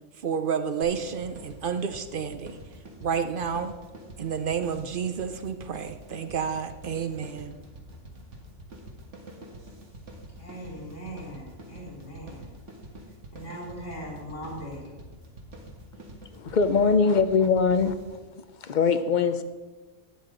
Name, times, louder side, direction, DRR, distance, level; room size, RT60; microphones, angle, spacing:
voice 1, 0.2-2.6 3.0-3.7 4.2-7.5, right 7 dB, 55° right, 9 dB, 0.7 m, -30 dB
sound 1, 0.8-18.3, right 1 dB, 80° right, 1.9 m, -46 dB
voice 2, 10.4-12.5 13.3-14.9, equal, 80° left, -4 dB, 4.1 m, -40 dB
voice 3, 16.3-18.0 18.6-19.4, left 5 dB, 50° left, 10 dB, 0.6 m, -22 dB
12.5 x 9.2 x 3.8 m, 1.3 s
omnidirectional pair, 1.2 m